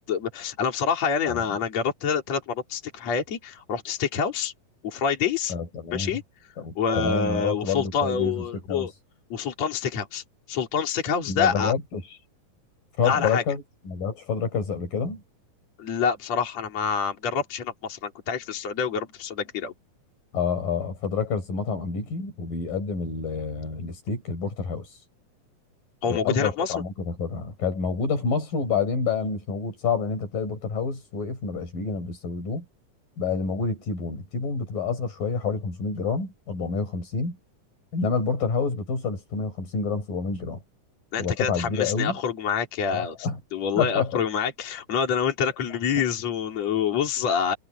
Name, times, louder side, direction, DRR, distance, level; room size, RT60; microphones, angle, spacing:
voice 1, 0.1-4.5 4.8-5.5 5.9-6.2 6.8-8.9 9.3-11.7 13.0-13.4 15.8-19.7 26.0-26.7 41.1-47.6, left 6 dB, 50° left, 4.2 m, -27 dB
voice 2, 5.5-6.2 6.6-8.9 11.3-12.0 13.0-15.2 20.3-24.9 26.1-32.6 33.2-37.4 37.9-40.6 41.2-42.2 42.9-43.4 43.8-44.2, left 5 dB, 75° left, 7.5 m, -28 dB
omnidirectional pair, 4.0 m